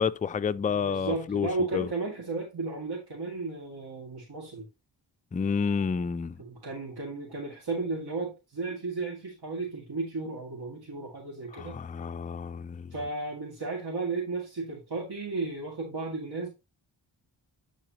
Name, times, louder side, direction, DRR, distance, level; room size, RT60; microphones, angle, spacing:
voice 1, 0.0-1.9 5.3-6.4 11.5-12.9, left 6 dB, 20° left, 0.3 m, -30 dB
voice 2, 0.7-4.7 6.4-11.8 12.9-16.5, right 3 dB, 55° right, 2.3 m, -34 dB
10.5 x 4.0 x 2.9 m
cardioid pair, 55°, 47 cm